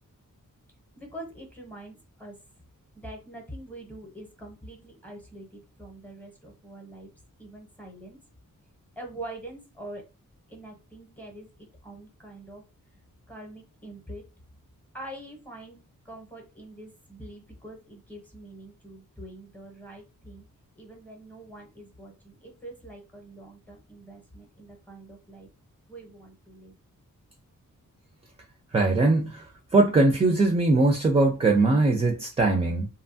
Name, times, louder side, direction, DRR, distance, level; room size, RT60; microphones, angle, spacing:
voice 1, 1.0-2.3 3.0-7.1 7.4-8.2 9.0-10.0 10.5-11.5 11.8-12.6 13.3-14.2 14.9-15.8 16.1-20.4 20.8-25.5 25.9-26.7, right 1 dB, 5° left, 0.7 m, -44 dB
voice 2, 28.7-29.4 29.7-32.9, right 2 dB, 20° right, 0.3 m, -21 dB
2.6 x 2.2 x 2.6 m
wide cardioid pair, 145°, 34 cm